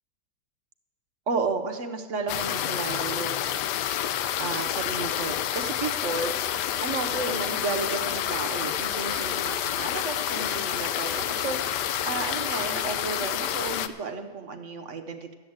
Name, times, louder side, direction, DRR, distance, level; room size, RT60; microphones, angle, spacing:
voice 1, 1.3-3.7 4.4-6.3 6.8-15.3, right 4 dB, 55° right, 5 dB, 1.0 m, -33 dB
sound 1, 2.3-13.9, left 10 dB, 85° left, 1.2 m, -29 dB
12.0 x 7.8 x 8.6 m, 1.4 s
omnidirectional pair, 1.8 m